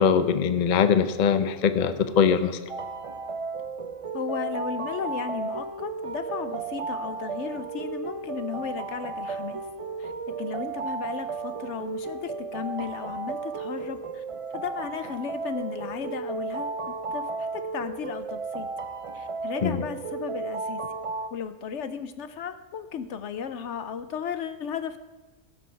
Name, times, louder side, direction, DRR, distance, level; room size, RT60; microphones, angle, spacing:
voice 1, 0.0-2.6 19.6-19.8, left 7 dB, 45° left, 11 dB, 0.6 m, -22 dB
sound 1, 2.7-21.3, right 4 dB, 50° right, 0.4 m, -34 dB
voice 2, 4.1-9.6 10.0-10.1 10.4-14.2 14.5-18.7 19.1-20.9 21.3-25.0, left 7 dB, 70° left, 11 dB, 1.0 m, -35 dB
16.5 x 6.3 x 5.7 m, 1.2 s
omnidirectional pair, 1.3 m